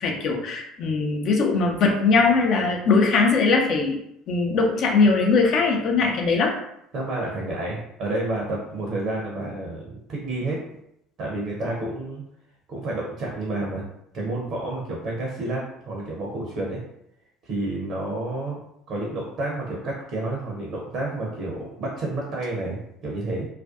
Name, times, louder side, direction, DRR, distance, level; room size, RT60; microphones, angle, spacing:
voice 1, 0.0-4.0 4.3-6.5, left 4 dB, 50° left, 1 dB, 0.5 m, -20 dB
voice 2, 6.9-9.8 10.1-10.6 11.2-12.2 12.7-13.8 14.1-16.8 17.4-18.6 18.9-23.5, right 2 dB, 50° right, -2 dB, 0.6 m, -30 dB
2.4 x 2.2 x 2.4 m, 0.77 s
figure-of-eight pair, 60°, 0 cm